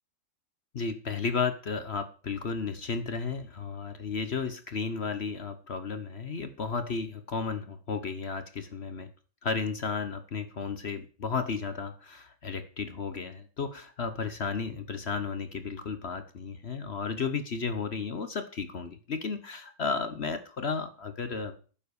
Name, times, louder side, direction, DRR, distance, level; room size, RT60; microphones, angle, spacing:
voice 1, 0.7-9.1 9.4-21.6, left 5 dB, 45° left, 10 dB, 1.0 m, -33 dB
10.5 x 7.2 x 6.9 m, 0.40 s
omnidirectional pair, 2.0 m